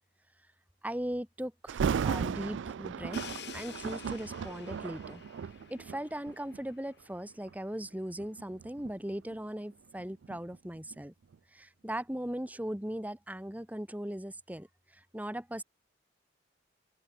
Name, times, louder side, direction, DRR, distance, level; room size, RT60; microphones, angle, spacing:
voice 1, 0.8-5.2 5.7-11.1 11.5-14.7 14.9-15.6, right 1 dB, 10° right, 1.5 m, -39 dB
Thunder, 1.7-6.7 7.3-7.5 8.2-11.0 11.3-11.4, right 6 dB, 85° right, 0.4 m, -36 dB
Crash cymbal, 3.1-6.9, left 7 dB, 65° left, 1.3 m, -49 dB
open air
head